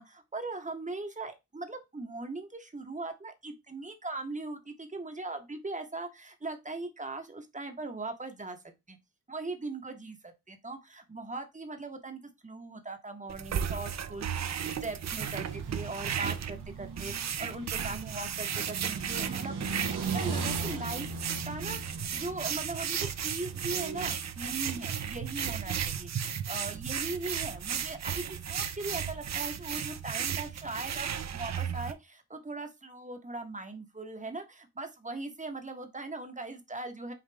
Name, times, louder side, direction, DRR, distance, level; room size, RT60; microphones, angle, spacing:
voice 1, 0.0-9.0 9.3-17.1 17.4-19.6 19.9-21.1 21.4-26.1 26.5-37.1, right 2 dB, 20° right, 6 dB, 1.0 m, -40 dB
sound 1, 13.3-31.9, right 8 dB, 45° right, 0.5 m, -35 dB
sound 2, 15.2-24.1, right 4 dB, 85° right, 0.9 m, -39 dB
5.1 x 2.4 x 3.3 m, 0.22 s
cardioid pair, 70°, 38 cm